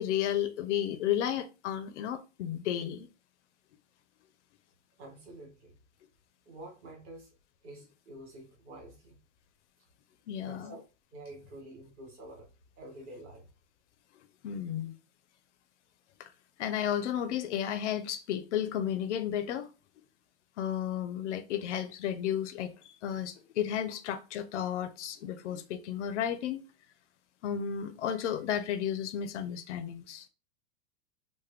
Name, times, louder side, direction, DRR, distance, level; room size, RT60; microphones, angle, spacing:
voice 1, 0.0-3.1 10.3-10.7 14.4-14.9 16.2-16.3 16.6-19.7 20.6-26.6 27.4-30.3, left 10 dB, 85° left, 0.6 m, -33 dB
voice 2, 5.0-5.7 6.5-7.3 7.6-9.2 10.4-10.8 11.1-12.5 12.8-13.5, right 1 dB, 25° right, 0.9 m, -48 dB
3.1 x 2.1 x 3.3 m
supercardioid pair, 165°, 35 cm